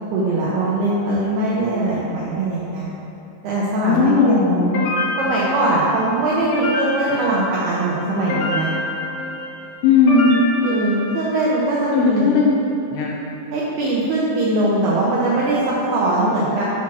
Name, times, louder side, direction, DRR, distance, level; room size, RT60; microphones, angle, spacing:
voice 1, 0.1-2.9 3.4-4.5 5.2-8.7 10.6-12.4 13.5-16.6, right 2 dB, 80° right, -7 dB, 2.3 m, -21 dB
voice 2, 3.8-4.9 9.8-10.4 11.9-12.5 12.9-13.2, left 4 dB, 85° left, -3 dB, 2.5 m, -16 dB
sound 1, 4.7-11.7, left 2 dB, 70° left, 2.4 m, -27 dB
7.2 x 3.0 x 5.8 m, 2.9 s
omnidirectional pair, 5.4 m